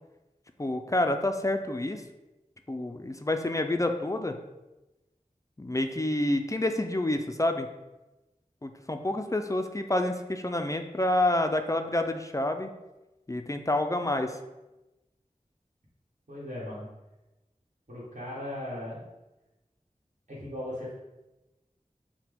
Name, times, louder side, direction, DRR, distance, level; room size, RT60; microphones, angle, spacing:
voice 1, 0.6-2.0 2.7-4.3 5.6-7.7 8.6-12.7 13.3-14.4, left 1 dB, 25° left, 6 dB, 0.3 m, -28 dB
voice 2, 16.3-16.9 17.9-19.0 20.3-20.9, left 1 dB, 60° right, -7 dB, 1.4 m, -37 dB
5.7 x 2.2 x 3.5 m, 1.0 s
wide cardioid pair, 45°, 14 cm